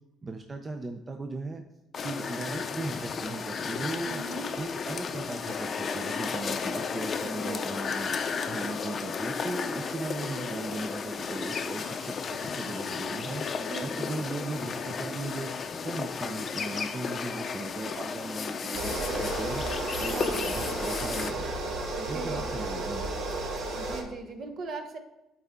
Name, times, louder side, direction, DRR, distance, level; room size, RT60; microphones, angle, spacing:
voice 1, 0.2-1.6 2.0-4.2 4.6-8.2 8.5-13.4 13.8-15.5 15.8-19.6 20.0-21.7 22.1-23.0, right 2 dB, 25° right, 5 dB, 0.5 m, -37 dB
sound 1, 1.9-21.3, left 5 dB, 35° left, 0.6 m, -33 dB
voice 2, 4.0-4.5 7.2-7.8 13.5-14.3 20.1-20.4 22.0-22.5 23.8-25.0, right 3 dB, 45° right, 6 dB, 1.0 m, -39 dB
sound 2, 18.7-24.0, right 2 dB, 70° right, 1.5 m, -33 dB
11.5 x 4.5 x 3.6 m, 0.97 s
cardioid pair, 135°, 0 cm